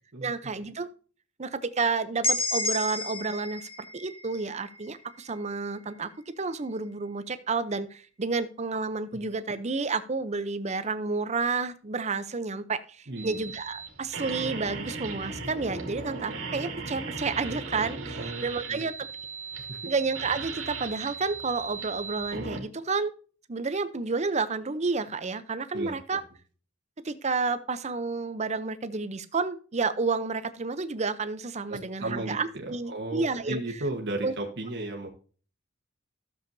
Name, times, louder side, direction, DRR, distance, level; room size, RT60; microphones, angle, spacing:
voice 1, 0.2-0.9 1.4-6.1 6.4-18.9 19.9-23.1 23.5-26.2 27.0-33.6 34.2-34.3, right 4 dB, 35° right, 12 dB, 0.6 m, -30 dB
sound 1, 2.2-6.1, left 1 dB, 25° left, 1.7 m, -32 dB
voice 2, 13.1-13.4 18.2-18.8 19.7-19.9 25.7-26.0 31.7-35.1, right 2 dB, 55° right, 1 dB, 1.3 m, -35 dB
sound 2, 13.2-22.6, right 4 dB, 80° right, 2.0 m, -37 dB
13.5 x 7.2 x 2.7 m, 0.39 s
head